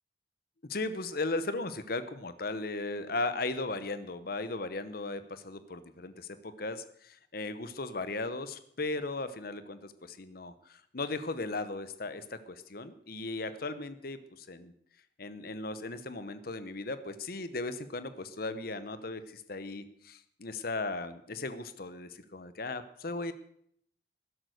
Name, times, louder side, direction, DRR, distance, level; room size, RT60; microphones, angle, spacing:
voice 1, 0.6-14.7 15.2-23.3, left 2 dB, 50° left, 12 dB, 0.9 m, -37 dB
12.5 x 11.0 x 6.5 m, 0.66 s
head